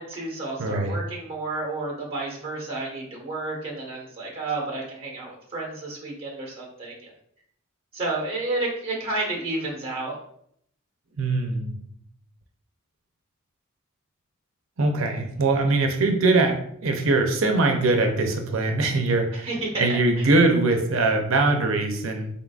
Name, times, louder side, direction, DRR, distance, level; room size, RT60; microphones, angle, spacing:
voice 1, 0.0-7.1 7.9-10.1 19.3-20.3, right 2 dB, 25° right, -1 dB, 1.2 m, -31 dB
voice 2, 0.6-1.0 11.2-11.7 14.8-19.5 19.8-22.3, right 2 dB, 75° right, 4 dB, 0.6 m, -22 dB
3.8 x 3.7 x 2.4 m, 0.69 s
head